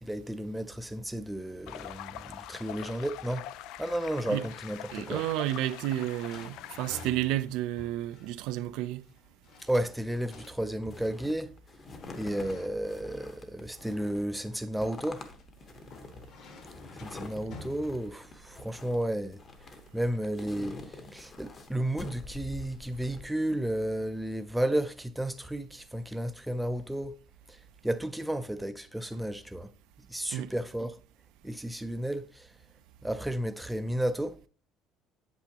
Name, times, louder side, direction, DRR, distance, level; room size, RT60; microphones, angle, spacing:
voice 1, 0.0-3.5 3.8-5.2 9.6-11.6 12.1-15.3 17.0-19.4 19.9-27.2 27.5-29.7 30.1-31.0 31.4-32.5 33.0-34.4, right 1 dB, 5° right, 0.5 m, -33 dB
sound 1, 1.7-7.1, left 13 dB, 65° left, 0.3 m, -44 dB
voice 2, 4.9-9.0 30.3-30.5, right 14 dB, 75° right, 0.5 m, -31 dB
sound 2, 5.4-18.7, left 2 dB, 50° left, 1.5 m, -51 dB
sound 3, 9.6-23.3, left 3 dB, 30° left, 1.0 m, -47 dB
8.3 x 7.8 x 2.9 m
cardioid pair, 160°, 0 cm